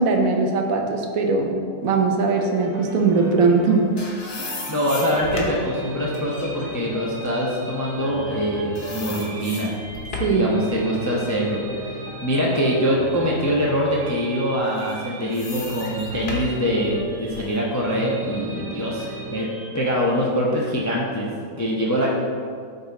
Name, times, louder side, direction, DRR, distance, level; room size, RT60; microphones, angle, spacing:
voice 1, 0.0-1.5 1.8-3.8 10.2-10.5, right 4 dB, 70° right, 3 dB, 1.1 m, -20 dB
sound 1, 2.3-19.9, right 2 dB, 90° right, 1.8 m, -36 dB
sound 2, 3.5-8.4 8.8-10.5 10.9-12.9 13.4-13.5 14.5-17.6, left 4 dB, 85° left, 1.6 m, -36 dB
voice 2, 4.4-9.7 10.3-19.5 19.7-21.3 21.6-22.1, equal, 15° left, -3 dB, 0.6 m, -24 dB
8.4 x 4.1 x 4.1 m, 2.1 s
omnidirectional pair, 1.6 m